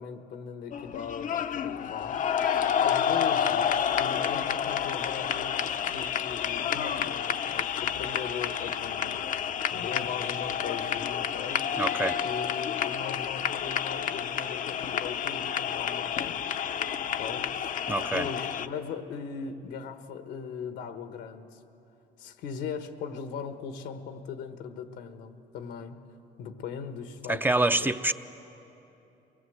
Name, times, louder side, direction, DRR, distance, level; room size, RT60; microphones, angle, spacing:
voice 1, 0.0-2.2 2.8-9.2 9.7-11.6 12.2-16.4 17.0-17.7 18.1-21.6 22.2-26.0 26.4-28.0, left 6 dB, 85° left, 8 dB, 1.4 m, -39 dB
sound 1, 0.7-18.7, left 8 dB, 50° left, 0.7 m, -29 dB
voice 2, 11.8-12.2 17.9-18.3 27.3-28.1, right 2 dB, 10° right, 9 dB, 0.5 m, -26 dB
23.5 x 19.5 x 8.0 m, 3.0 s
cardioid pair, 110°, 17 cm